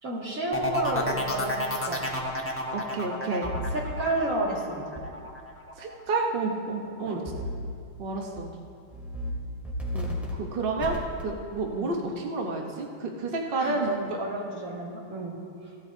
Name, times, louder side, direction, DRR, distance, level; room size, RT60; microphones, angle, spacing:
voice 1, 0.0-2.0 3.7-4.9 7.0-7.2 11.7-11.9 13.6-15.7, right 1 dB, 40° right, -4 dB, 2.2 m, -31 dB
sound 1, 0.5-6.2 6.5-7.0, left 1 dB, 20° left, 0.3 m, -32 dB
voice 2, 2.7-3.5 5.8-7.2 8.0-8.5 9.9-10.9 11.2-14.2, right 3 dB, 60° right, 1 dB, 0.6 m, -30 dB
sound 2, 3.4-3.9 5.0-5.1 7.3-7.7 8.1-8.4 8.9-9.3 9.6-10.3 10.8-11.2, equal, ahead, 1.9 m, -33 dB
17.0 x 13.0 x 2.7 m, 2.3 s
omnidirectional pair, 2.4 m